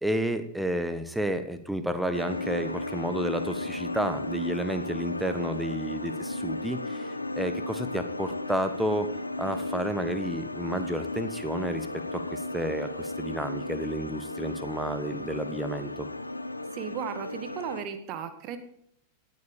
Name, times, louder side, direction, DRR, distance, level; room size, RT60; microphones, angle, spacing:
voice 1, 0.0-7.1 7.4-9.1 9.4-11.9 12.1-16.1, equal, 5° right, 9 dB, 1.4 m, -31 dB
sound 1, 2.1-17.8, left 2 dB, 85° left, 0.7 m, -35 dB
voice 2, 16.7-18.6, right 8 dB, 40° right, 10 dB, 1.8 m, -35 dB
17.0 x 8.6 x 5.1 m, 0.72 s
figure-of-eight pair, 90°, 0 cm